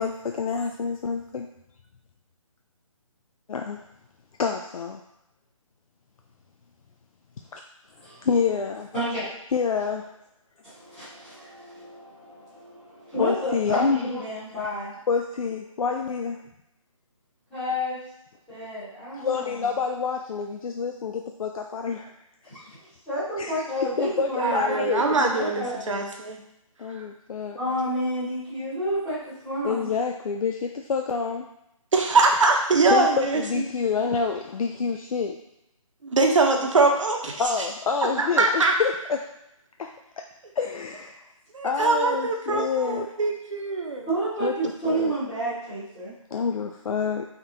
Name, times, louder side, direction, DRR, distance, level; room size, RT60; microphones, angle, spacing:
voice 1, 0.0-1.5 3.5-3.8 4.4-5.0 7.5-7.6 8.2-8.9 9.5-10.1 13.2-14.2 15.1-16.4 18.6-18.7 19.1-22.1 23.4-23.6 24.0-25.0 25.7-26.1 26.8-27.6 29.6-31.4 32.9-35.4 37.4-39.2 39.8-39.9 40.2-40.3 40.6-41.1 41.6-43.1 44.4-44.5 44.8-45.1 46.3-47.3, left 5 dB, 75° left, 3 dB, 0.4 m, -27 dB
voice 2, 8.9-9.2 10.6-14.9 17.5-18.0 18.5-19.5 22.5-22.6 23.1-25.7 27.6-29.9 44.1-46.1, equal, 5° left, -16 dB, 1.0 m, -30 dB
voice 3, 24.4-26.4 26.9-27.0 31.9-33.6 36.0-37.4 38.2-38.7 41.5-44.1, right 3 dB, 60° right, 2 dB, 0.8 m, -22 dB
3.7 x 3.5 x 2.7 m, 0.83 s
hypercardioid pair, 175°, 18 cm